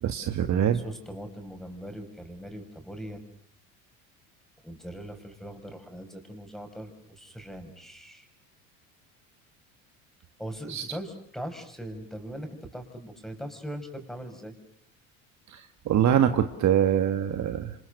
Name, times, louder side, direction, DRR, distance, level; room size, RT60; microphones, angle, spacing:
voice 1, 0.0-0.8 10.7-10.8 15.5-17.7, right 9 dB, 45° right, 8 dB, 1.8 m, -24 dB
voice 2, 0.7-3.2 4.6-8.3 10.4-14.5, equal, ahead, 6 dB, 6.3 m, -40 dB
29.0 x 26.5 x 6.7 m, 0.65 s
supercardioid pair, 90°, 39 cm